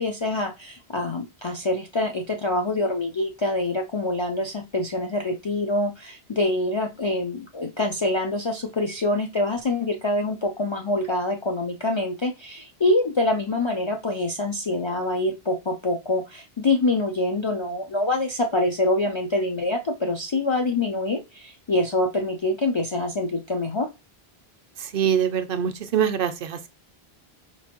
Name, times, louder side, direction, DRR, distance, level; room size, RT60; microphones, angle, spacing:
voice 1, 0.0-23.9, left 2 dB, 45° left, 0.4 m, -25 dB
voice 2, 24.8-26.7, right 8 dB, 65° right, 0.7 m, -24 dB
4.5 x 2.5 x 2.8 m
omnidirectional pair, 1.1 m